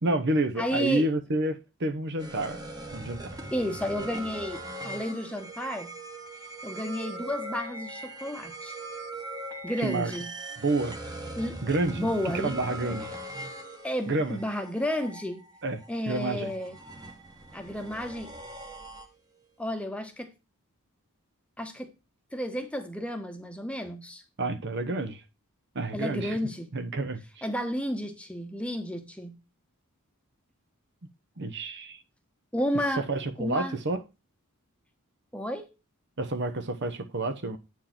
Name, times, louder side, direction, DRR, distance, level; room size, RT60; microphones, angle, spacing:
voice 1, 0.0-2.6 2.9-3.3 9.8-10.1 10.6-11.0 11.6-12.1 12.4-13.1 14.1-14.4 15.6-15.8 16.1-16.5 24.4-25.2 25.7-26.4 26.7-27.4 31.4-32.0 33.0-34.0 36.2-37.6, right 2 dB, 50° right, 0.9 m, -29 dB
voice 2, 0.6-1.1 3.5-5.9 6.6-8.7 9.6-10.3 11.4-11.6 12.0-12.5 12.9-13.0 13.8-15.4 15.9-16.8 17.5-18.3 19.6-20.3 21.6-21.9 22.3-24.2 25.9-26.7 27.4-29.3 32.5-33.0 33.4-33.7 35.3-35.7, equal, 5° left, 1.1 m, -32 dB
sound 1, 2.2-19.5, right 1 dB, 15° right, 1.2 m, -41 dB
9.0 x 4.7 x 5.9 m
head